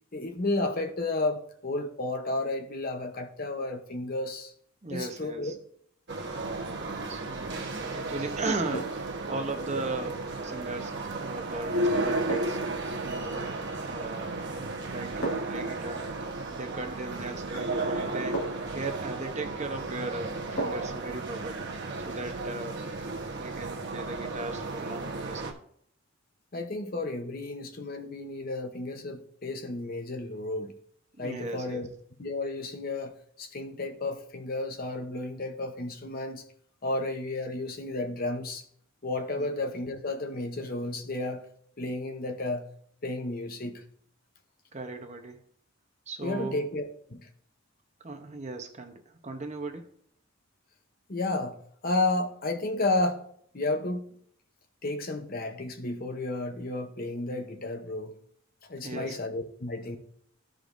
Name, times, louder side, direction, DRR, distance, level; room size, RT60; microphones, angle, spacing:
voice 1, 0.1-4.5 4.9-5.5 26.5-30.7 31.2-31.9 32.2-36.4 36.8-38.6 39.0-41.4 41.8-42.7 43.0-43.8 46.2-46.8 47.1-47.3 51.1-53.3 53.5-54.1 54.8-58.2 58.7-60.0, left 2 dB, 40° left, 5 dB, 0.8 m, -32 dB
voice 2, 4.8-5.5 7.1-12.6 13.0-13.6 13.8-14.3 14.9-16.1 16.5-18.4 18.7-21.7 22.0-22.8 23.3-25.6 31.2-31.8 39.4-39.5 44.7-45.4 46.1-46.6 48.0-49.9 58.8-59.2, right 3 dB, 30° right, 5 dB, 0.8 m, -37 dB
sound 1, 6.1-25.5, right 2 dB, 50° right, 1.1 m, -34 dB
sound 2, 8.7-9.1 11.2-11.4 12.3-12.7 14.1-14.5 15.2-15.7 17.3-17.4 18.3-18.8 20.6-21.0 21.4-21.5, right 1 dB, 80° left, 1.9 m, -36 dB
14.5 x 5.1 x 2.6 m, 0.64 s
head